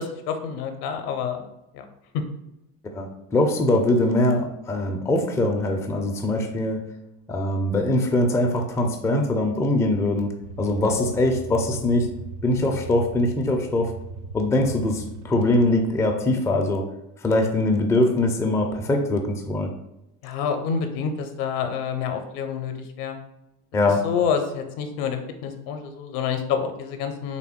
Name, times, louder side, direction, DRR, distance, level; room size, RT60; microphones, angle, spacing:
voice 1, 0.0-1.4 1.7-1.8 20.2-22.7 23.0-23.2 24.0-27.4, left 7 dB, 55° left, 6 dB, 0.6 m, -28 dB
voice 2, 2.9-6.8 7.3-10.3 10.6-12.1 12.4-13.9 14.3-16.9 17.2-19.7 23.7-24.1, left 1 dB, 5° left, 2 dB, 0.3 m, -22 dB
sound 1, 10.4-16.0, right 3 dB, 75° right, 0.6 m, -38 dB
3.4 x 2.5 x 3.5 m, 0.88 s
hypercardioid pair, 65°, 45 cm